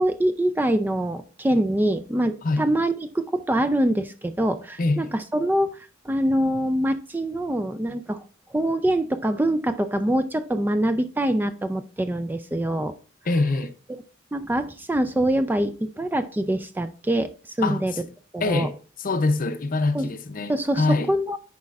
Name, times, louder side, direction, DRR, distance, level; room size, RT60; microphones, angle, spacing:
voice 1, 0.0-5.8 6.1-8.2 8.5-12.9 14.3-17.3 17.6-17.9 18.3-18.7 19.9-20.1 20.5-21.4, right 1 dB, 10° right, 0.3 m, -24 dB
voice 2, 4.8-5.1 13.2-13.7 17.6-17.8 18.4-21.1, left 3 dB, 45° left, 0.6 m, -24 dB
10.5 x 4.3 x 2.4 m
head